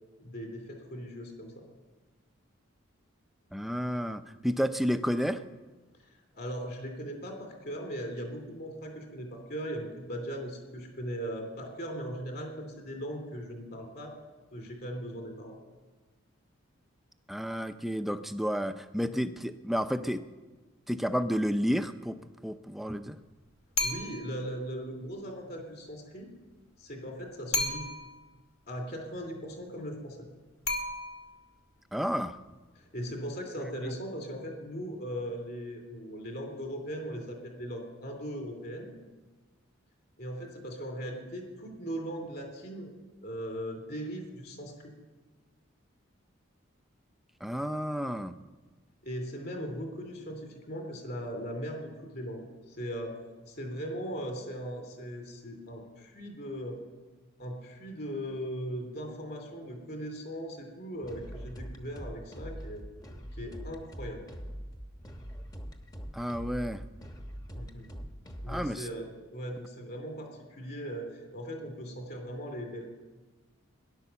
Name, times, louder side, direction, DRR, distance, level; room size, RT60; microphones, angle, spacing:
voice 1, 0.2-1.6 6.1-14.1 14.5-15.6 23.8-26.3 26.8-27.8 28.7-30.3 32.7-38.9 40.2-42.9 43.2-44.9 49.0-53.2 53.5-56.8 57.4-62.8 63.3-64.2 67.5-67.9 68.4-72.9, equal, 45° left, 4 dB, 2.9 m, -39 dB
voice 2, 3.5-5.4 17.3-20.2 20.9-22.2 22.4-23.2 31.9-32.4 33.8-33.9 47.4-48.3 66.1-66.8 68.5-68.9, equal, ahead, 9 dB, 0.5 m, -31 dB
sound 1, 23.8-24.4 27.5-28.2 30.7-31.5, left 2 dB, 75° left, 1.9 m, -32 dB
sound 2, 61.0-68.7, equal, 20° left, 1.1 m, -43 dB
18.0 x 11.0 x 7.0 m, 1.3 s
head